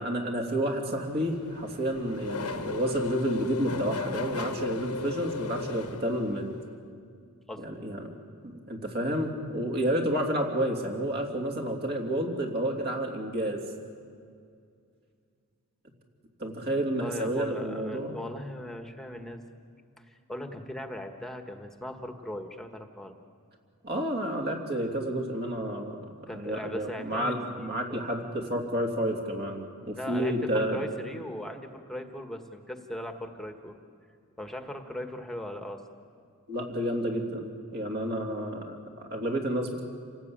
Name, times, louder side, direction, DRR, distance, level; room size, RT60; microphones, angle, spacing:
voice 1, 0.0-6.5 7.6-8.1 8.4-13.6 16.4-18.2 23.8-26.0 26.3-30.9 36.5-39.8, right 1 dB, 45° right, 2 dB, 3.1 m, -30 dB
Race car auto racing / Accelerating revving vroom, 1.1-6.6, left 3 dB, 90° left, 1.4 m, -36 dB
voice 2, 17.0-19.4 20.1-23.1 26.3-28.1 30.0-33.8 34.4-35.8, left 1 dB, ahead, 5 dB, 1.5 m, -39 dB
28.5 x 18.5 x 8.9 m, 2.3 s
head